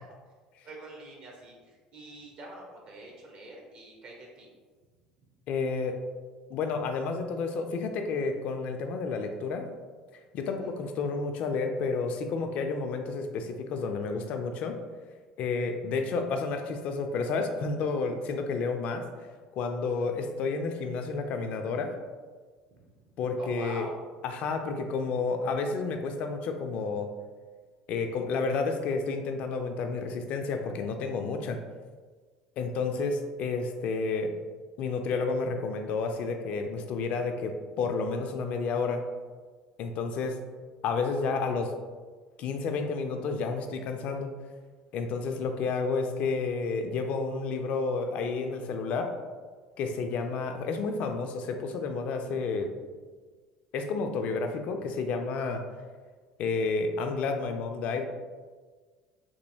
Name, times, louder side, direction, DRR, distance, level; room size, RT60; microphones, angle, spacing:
voice 1, 0.6-4.5 19.8-20.1 22.8-22.9 23.4-24.0 50.1-50.4, right 1 dB, 50° right, -2 dB, 0.9 m, -45 dB
voice 2, 5.5-6.0 6.5-9.7 10.3-14.8 15.4-19.0 19.5-21.9 23.2-23.9 24.2-27.1 27.9-31.6 32.6-34.3 34.8-39.0 39.8-40.4 40.8-41.7 42.4-44.3 44.9-49.1 49.8-52.7 53.7-55.6 56.4-58.1, left 4 dB, 55° left, 5 dB, 0.3 m, -30 dB
3.0 x 2.7 x 2.7 m, 1.5 s
hypercardioid pair, 65°, 3 cm